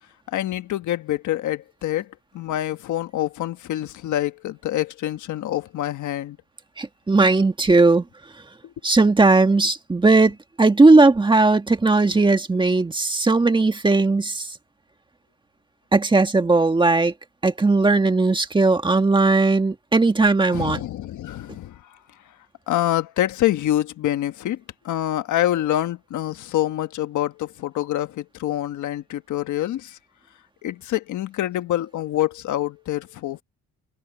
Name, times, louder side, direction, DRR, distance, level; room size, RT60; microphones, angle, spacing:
voice 1, 0.3-2.1 2.3-6.4 20.5-21.8 22.7-24.6 24.8-30.0 30.6-33.4, left 13 dB, 65° left, 1.4 m, -26 dB
voice 2, 6.8-8.0 8.8-14.5 15.9-17.1 17.4-20.8, right 3 dB, 15° right, 1.7 m, -17 dB
cardioid pair, 130°, 32 cm